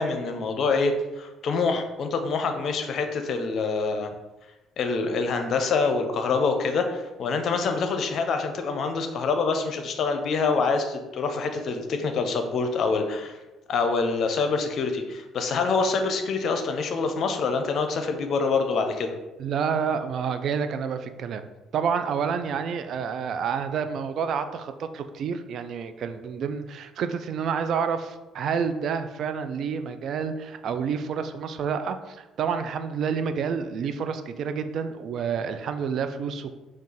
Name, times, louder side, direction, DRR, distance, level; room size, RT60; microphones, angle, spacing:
voice 1, 0.0-4.1 4.8-13.4 13.7-19.1, left 4 dB, 55° left, 6 dB, 0.6 m, -26 dB
voice 2, 19.4-21.5 21.7-36.5, right 6 dB, 55° right, 9 dB, 0.4 m, -29 dB
4.5 x 2.4 x 4.5 m, 1.1 s
hypercardioid pair, 50°, 0 cm